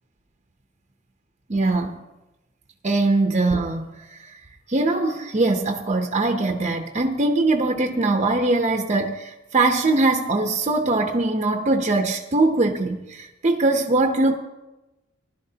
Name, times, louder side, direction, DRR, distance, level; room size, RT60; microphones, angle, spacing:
voice 1, 1.5-2.0 2.8-4.3 4.7-14.4, right 2 dB, 35° right, 4 dB, 0.7 m, -22 dB
19.5 x 11.5 x 2.8 m, 1.0 s
head